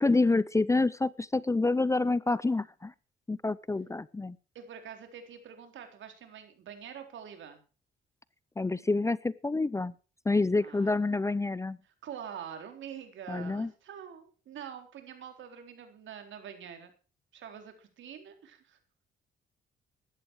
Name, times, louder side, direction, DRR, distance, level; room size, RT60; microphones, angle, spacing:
voice 1, 0.0-2.9 3.3-4.4 8.6-9.9 10.3-11.8 13.3-13.7, left 3 dB, 15° left, 20 dB, 0.5 m, -27 dB
voice 2, 4.5-7.6 10.6-11.1 11.8-16.9 17.3-18.8, right 8 dB, 75° right, 6 dB, 3.9 m, -45 dB
15.0 x 12.0 x 4.7 m, 0.36 s
cardioid pair, 90°, 20 cm